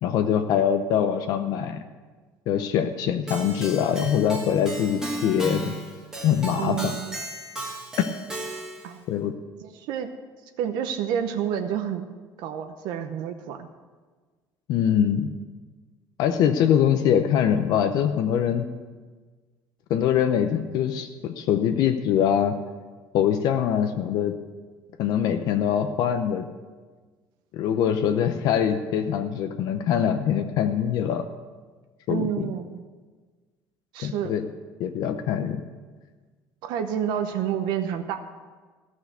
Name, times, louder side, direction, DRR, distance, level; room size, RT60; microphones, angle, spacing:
voice 1, 0.0-1.8 2.5-5.7 6.2-6.9 9.1-9.3 14.7-15.3 16.2-18.7 19.9-22.6 23.1-24.4 25.0-26.5 27.5-31.2 32.1-32.5 34.0-34.5 34.8-35.6, left 9 dB, 55° left, 7 dB, 0.6 m, -23 dB
Keyboard (musical), 3.3-8.9, right 1 dB, 5° right, 1.4 m, -35 dB
voice 2, 6.5-7.1 8.8-9.0 9.6-10.1 10.6-12.0 12.4-13.7 32.1-32.8 33.9-34.3 36.6-38.2, right 9 dB, 70° right, 6 dB, 0.8 m, -29 dB
14.0 x 6.3 x 8.1 m, 1.4 s
cardioid pair, 180°, 8 cm